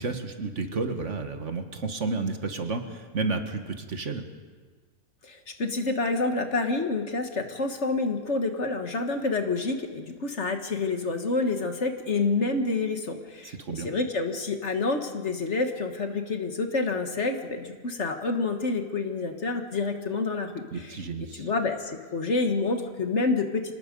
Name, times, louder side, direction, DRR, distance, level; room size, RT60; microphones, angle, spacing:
voice 1, 0.0-4.3 13.4-13.9 20.7-21.5, right 3 dB, 55° right, 6 dB, 1.7 m, -31 dB
voice 2, 5.2-21.0 21.4-23.7, left 3 dB, 50° left, 5 dB, 1.7 m, -28 dB
26.5 x 19.0 x 5.3 m, 1.4 s
omnidirectional pair, 1.6 m